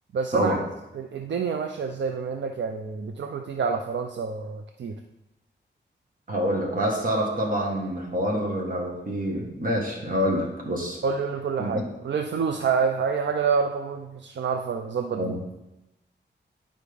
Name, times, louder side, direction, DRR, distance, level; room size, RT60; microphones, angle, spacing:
voice 1, 0.1-0.6 0.9-5.0 11.0-15.4, right 5 dB, 70° right, 5 dB, 0.5 m, -27 dB
voice 2, 6.3-11.0 11.6-11.8 15.1-15.5, equal, 45° right, -1 dB, 1.6 m, -27 dB
9.9 x 5.2 x 3.5 m, 0.95 s
wide cardioid pair, 155°, 19 cm